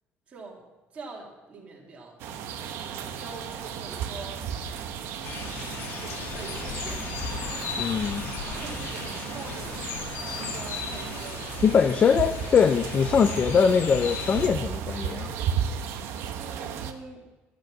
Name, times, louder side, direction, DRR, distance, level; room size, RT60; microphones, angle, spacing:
voice 1, 0.3-0.6 0.9-2.2 2.8-4.4 5.4-7.3 8.4-9.1 9.3-11.4 16.4-17.3, right 4 dB, 30° right, -2 dB, 2.2 m, -44 dB
sound 1, 2.2-16.9, right 8 dB, 65° right, 1.0 m, -34 dB
sound 2, 5.2-14.5, left 6 dB, 60° left, 1.7 m, -36 dB
voice 2, 7.8-8.3 11.6-15.3, left 6 dB, 30° left, 8 dB, 0.5 m, -22 dB
11.0 x 9.2 x 6.2 m, 1.2 s
cardioid pair, 170°, 5 cm